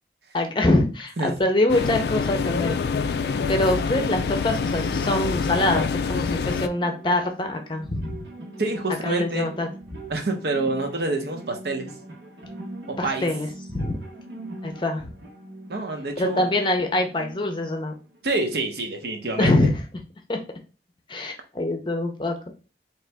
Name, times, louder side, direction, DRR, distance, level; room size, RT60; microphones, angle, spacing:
voice 1, 0.3-2.8 3.5-8.2 9.0-9.7 13.0-14.0 14.6-15.1 16.2-17.9 19.4-19.8 20.3-20.4 21.1-22.4, left 1 dB, 25° left, 5 dB, 0.6 m, -24 dB
sound 1, 1.7-6.7, left 5 dB, 65° left, 0.3 m, -26 dB
sound 2, 4.0-18.9, right 1 dB, 90° right, 1.2 m, -42 dB
voice 2, 8.6-9.5 10.1-11.9 12.9-13.3 15.7-16.5 18.2-19.5, right 2 dB, 65° right, 4 dB, 0.8 m, -27 dB
3.9 x 2.9 x 3.4 m, 0.35 s
head